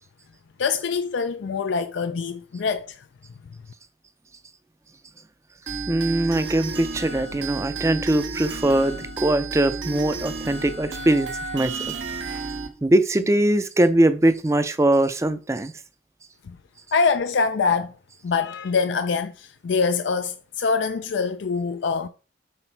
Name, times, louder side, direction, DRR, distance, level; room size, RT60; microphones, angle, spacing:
voice 1, 0.6-3.0 16.4-16.6 16.9-17.9 18.2-22.1, left 5 dB, 85° left, 0.4 m, -24 dB
sound 1, 5.7-12.7, right 4 dB, 85° right, 1.3 m, -32 dB
voice 2, 5.9-11.9 12.8-15.7, right 1 dB, 15° right, 0.4 m, -21 dB
5.8 x 3.9 x 4.5 m
head